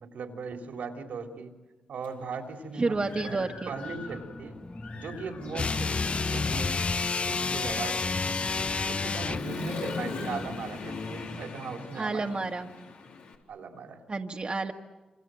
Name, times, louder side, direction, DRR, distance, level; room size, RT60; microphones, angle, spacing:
voice 1, 0.0-1.5 1.9-3.0 3.2-4.6 4.9-8.4 8.9-12.5 13.5-14.0, right 5 dB, 80° right, 4 dB, 3.7 m, -39 dB
Human voice / Motorcycle, 2.0-2.1 2.6-4.4 4.8-13.4, left 4 dB, 85° left, 3.9 m, -40 dB
voice 2, 2.8-3.7 5.7-5.9 11.9-12.7 14.1-14.7, right 3 dB, 45° right, 3 dB, 1.7 m, -30 dB
sound 1, 2.9-11.5, left 2 dB, 25° left, 1.2 m, -45 dB
sound 2, 5.5-9.5, left 4 dB, 50° left, 0.8 m, -29 dB
27.5 x 27.0 x 7.8 m, 1.2 s
supercardioid pair, 45°, 3 cm